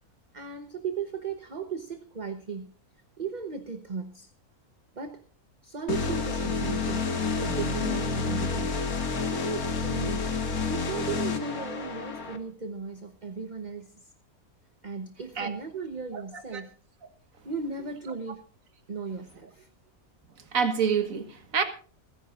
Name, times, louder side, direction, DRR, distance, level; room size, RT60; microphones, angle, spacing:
voice 1, 0.3-2.7 3.2-4.3 4.9-5.2 5.6-7.1 7.4-8.8 9.3-10.3 10.7-14.1 14.8-16.7 17.4-18.4 18.9-19.7, right 5 dB, 35° right, 1.1 m, -36 dB
sound 1, 5.9-12.4, left 4 dB, 70° left, 2.1 m, -29 dB
voice 2, 20.5-21.6, right 6 dB, 65° right, 1.9 m, -26 dB
28.5 x 10.0 x 2.5 m
omnidirectional pair, 1.6 m